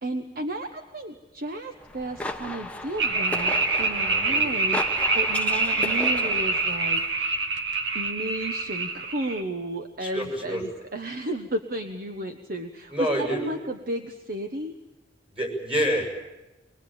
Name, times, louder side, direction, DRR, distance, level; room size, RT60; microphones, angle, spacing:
voice 1, 0.0-7.5 7.9-14.7, right 1 dB, 55° right, 6 dB, 1.2 m, -33 dB
sound 1, 1.8-6.8, left 2 dB, 10° left, 1.0 m, -35 dB
sound 2, 3.0-9.4, right 3 dB, 80° right, 2.1 m, -26 dB
voice 2, 4.1-4.4 10.0-10.7 12.9-13.5 15.3-16.1, equal, 30° right, 2 dB, 7.1 m, -27 dB
24.0 x 21.5 x 9.0 m, 1.1 s
head